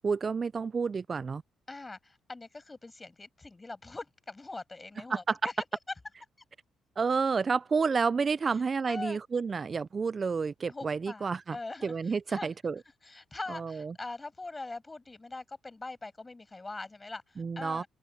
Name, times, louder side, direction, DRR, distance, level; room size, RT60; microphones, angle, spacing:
voice 1, 0.0-1.4 5.1-5.4 7.0-11.6 11.8-12.8 13.5-13.9 17.4-17.8, right 5 dB, 35° right, 0.3 m, -30 dB
voice 2, 1.7-5.7 8.5-9.2 10.7-12.5 13.0-17.9, left 3 dB, 20° left, 7.2 m, -42 dB
open air
cardioid pair, 90°, 0 cm